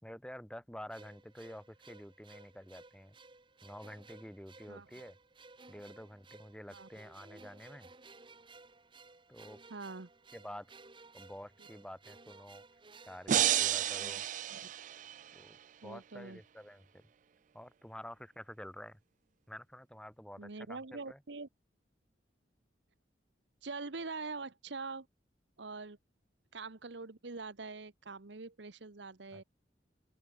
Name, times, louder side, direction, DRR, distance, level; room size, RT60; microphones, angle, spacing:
voice 1, 0.0-3.1 3.6-5.2 5.7-7.9 9.3-9.6 10.3-10.7 11.1-12.6 13.0-14.3 15.3-15.6 15.8-17.0 17.5-19.0 19.5-21.2 29.3-29.4, equal, 5° left, 2.5 m, -49 dB
sound 1, 0.9-14.2, right 3 dB, 25° right, 1.5 m, -57 dB
voice 2, 9.7-10.1 14.0-14.2 14.5-14.6 15.8-16.4 20.4-21.5 23.6-25.1 25.6-26.0 26.5-29.4, right 3 dB, 75° right, 1.1 m, -44 dB
sound 2, 13.3-15.4, right 11 dB, 45° right, 0.3 m, -31 dB
open air
head